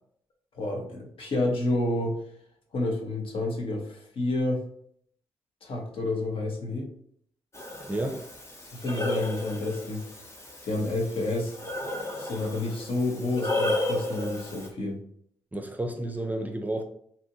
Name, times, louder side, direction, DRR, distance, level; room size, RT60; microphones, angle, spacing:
voice 1, 0.5-2.2 2.7-4.6 5.6-6.9 8.7-10.0 10.6-11.5 12.2-15.0, left 2 dB, 65° left, 0.8 m, -29 dB
Breathing, 7.5-14.7, left 1 dB, 30° left, 0.8 m, -33 dB
voice 2, 7.9-8.2 15.5-16.8, right 1 dB, 15° right, 0.5 m, -31 dB
2.7 x 2.5 x 2.7 m
supercardioid pair, 45°, 10 cm